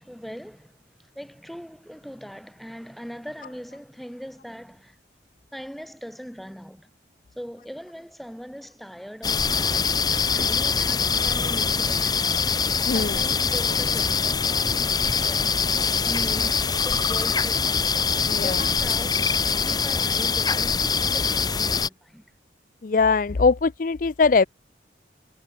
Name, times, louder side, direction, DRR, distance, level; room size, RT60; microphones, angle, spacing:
voice 1, 0.0-5.0 5.5-6.9 7.4-12.4 12.9-17.9 18.2-22.2, equal, ahead, 4.5 m, -40 dB
sound 1, 9.2-21.9, left 5 dB, 20° left, 1.0 m, -23 dB
voice 2, 12.8-13.2 18.3-18.7 22.8-24.5, left 4 dB, 50° left, 0.5 m, -21 dB
head